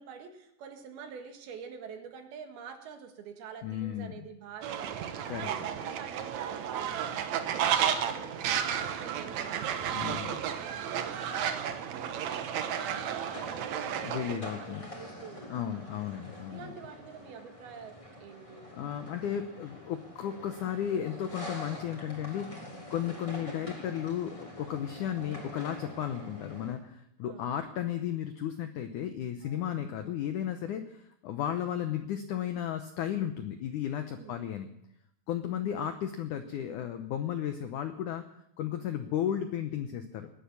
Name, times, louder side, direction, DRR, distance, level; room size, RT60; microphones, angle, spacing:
voice 1, 0.0-5.0 5.4-8.3 8.6-10.5 10.9-16.0 16.5-18.7 22.9-23.2 27.2-27.5 29.4-29.9 34.1-34.4, right 6 dB, 70° right, 6 dB, 3.4 m, -47 dB
voice 2, 3.6-4.1 5.3-5.5 9.9-10.4 14.0-14.9 15.5-16.7 18.7-34.7 35.3-38.2 38.6-40.3, left 10 dB, 85° left, 8 dB, 1.8 m, -34 dB
Fowl, 4.6-14.4, right 9 dB, 85° right, 1.6 m, -32 dB
sound 1, 13.2-26.7, left 1 dB, 10° left, 2.9 m, -46 dB
19.0 x 10.5 x 7.2 m, 0.75 s
omnidirectional pair, 4.8 m